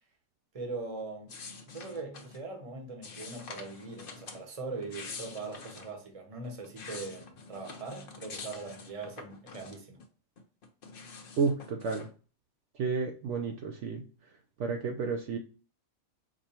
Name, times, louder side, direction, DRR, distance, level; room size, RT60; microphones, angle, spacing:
voice 1, 0.5-1.3 1.7-10.0, right 3 dB, 30° right, 0.9 m, -41 dB
sound 1, 1.3-2.4 3.0-4.4 4.8-5.9 6.4-10.0 10.4-12.1, left 4 dB, 45° left, 0.8 m, -46 dB
voice 2, 11.4-12.1 12.8-14.0 14.6-15.4, right 4 dB, 65° right, 0.8 m, -31 dB
5.1 x 2.2 x 4.2 m
omnidirectional pair, 1.4 m